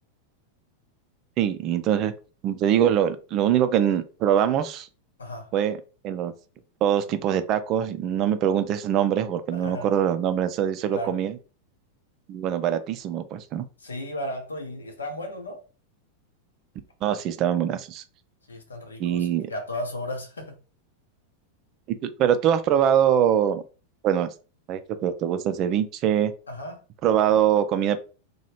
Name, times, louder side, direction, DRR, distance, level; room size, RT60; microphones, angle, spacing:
voice 1, 1.4-2.1 2.4-4.9 5.5-5.8 6.0-6.3 6.8-11.3 12.3-13.6 17.0-18.0 19.0-19.5 22.0-23.6 24.0-24.3 24.7-26.3 27.0-28.0, right 9 dB, 35° right, 0.3 m, -23 dB
voice 2, 5.2-5.5 9.5-10.0 10.9-11.2 13.8-15.6 18.5-20.6 26.5-26.8, left 1 dB, 75° left, 0.7 m, -35 dB
2.8 x 2.3 x 2.9 m
figure-of-eight pair, 90°, 0 cm